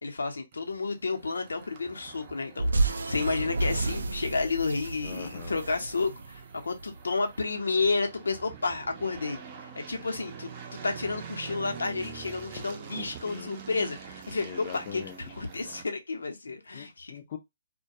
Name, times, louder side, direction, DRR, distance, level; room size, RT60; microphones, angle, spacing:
voice 1, 0.0-9.4 9.9-14.5 14.7-15.0 15.3-17.2, left 4 dB, 90° left, 0.7 m, -31 dB
sound 1, 0.5-15.8, right 6 dB, 35° right, 0.6 m, -46 dB
sound 2, 2.6-7.0, right 2 dB, 85° right, 0.3 m, -30 dB
voice 2, 5.0-5.6 13.2-13.5 14.4-15.3 16.7-17.4, left 9 dB, 40° left, 0.4 m, -42 dB
2.2 x 2.1 x 2.6 m
hypercardioid pair, 150°, 0 cm